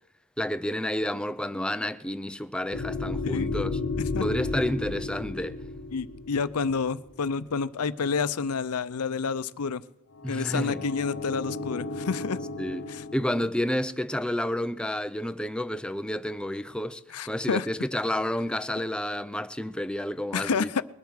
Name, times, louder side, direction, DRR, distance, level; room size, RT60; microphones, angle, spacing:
voice 1, 0.4-3.8 4.2-5.6 10.2-10.8 12.6-17.0 17.3-20.8, left 1 dB, 5° left, 0.5 m, -30 dB
sound 1, 2.7-7.1 10.1-13.5, left 3 dB, 55° left, 1.0 m, -33 dB
voice 2, 5.9-9.8 10.3-12.4 12.9-13.0 17.1-17.7 20.3-20.8, left 5 dB, 85° left, 0.6 m, -29 dB
21.0 x 8.3 x 6.4 m
head